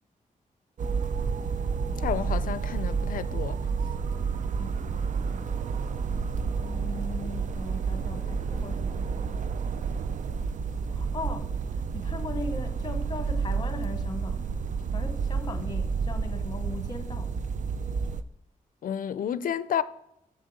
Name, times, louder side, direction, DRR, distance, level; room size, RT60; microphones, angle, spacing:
sound 1, 0.8-18.2, right 5 dB, 60° right, 0.5 m, -30 dB
voice 1, 2.0-3.6 18.8-19.8, left 9 dB, 70° left, 0.4 m, -30 dB
voice 2, 6.6-9.5 10.9-14.5 14.9-17.3, left 3 dB, 30° left, 1.0 m, -39 dB
7.5 x 6.5 x 3.7 m
wide cardioid pair, 115°, 15 cm